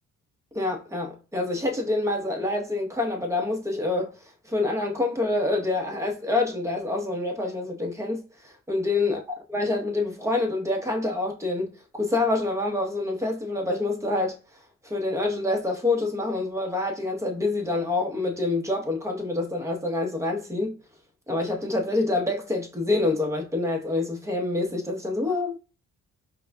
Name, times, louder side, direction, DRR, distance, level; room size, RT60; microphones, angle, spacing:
voice 1, 0.5-4.2 4.5-9.2 9.5-14.4 14.8-20.8 21.3-25.5, left 2 dB, 10° right, 1.1 m, -27 dB
5.3 x 2.4 x 2.3 m
cardioid pair, 90°, 30 cm